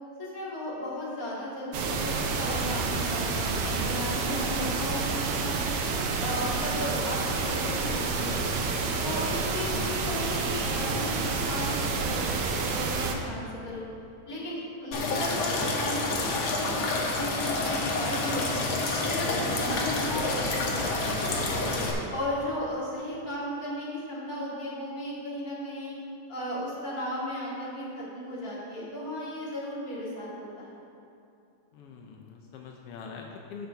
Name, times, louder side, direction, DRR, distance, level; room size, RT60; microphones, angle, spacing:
voice 1, 0.2-5.5 6.2-8.6 9.0-13.9 14.3-18.6 19.0-21.7 22.1-25.9 26.3-30.8, left 1 dB, 30° left, -8 dB, 2.5 m, -35 dB
sound 1, 1.7-13.1, right 4 dB, 75° right, 1.3 m, -29 dB
sound 2, 14.9-21.9, left 2 dB, 60° left, 1.4 m, -28 dB
voice 2, 31.7-33.7, left 5 dB, 85° left, 1 dB, 1.3 m, -43 dB
14.5 x 5.8 x 3.5 m, 2.6 s
omnidirectional pair, 3.3 m